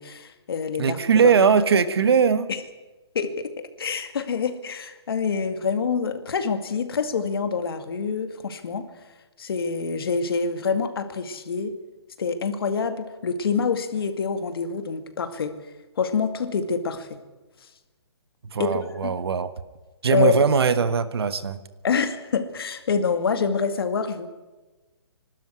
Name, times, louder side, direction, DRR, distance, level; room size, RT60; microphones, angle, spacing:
voice 1, 0.0-1.0 2.5-2.6 3.1-3.5 3.8-8.9 9.4-11.7 12.2-15.6 16.0-17.2 18.6-19.1 20.1-20.4 21.8-24.3, left 5 dB, 60° left, 8 dB, 2.2 m, -26 dB
voice 2, 0.8-2.5 18.4-19.5 20.0-21.6, right 6 dB, 65° right, 12 dB, 1.5 m, -20 dB
25.5 x 12.5 x 9.5 m, 1.2 s
hypercardioid pair, 165°, 14 cm